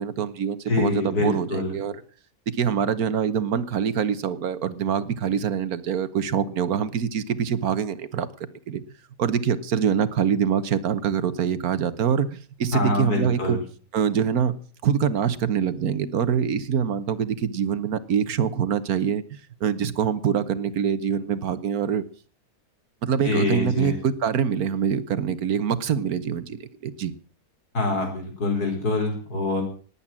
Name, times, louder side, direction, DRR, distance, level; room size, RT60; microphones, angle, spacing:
voice 1, 0.0-1.9 2.5-8.3 8.7-8.8 9.2-13.6 13.9-14.6 14.8-22.0 23.0-27.1, right 7 dB, 70° right, 14 dB, 1.5 m, -25 dB
voice 2, 0.7-1.8 12.7-13.6 23.2-24.0 27.7-29.6, left 3 dB, 85° left, 3 dB, 5.4 m, -25 dB
19.5 x 8.6 x 7.4 m, 0.43 s
omnidirectional pair, 1.6 m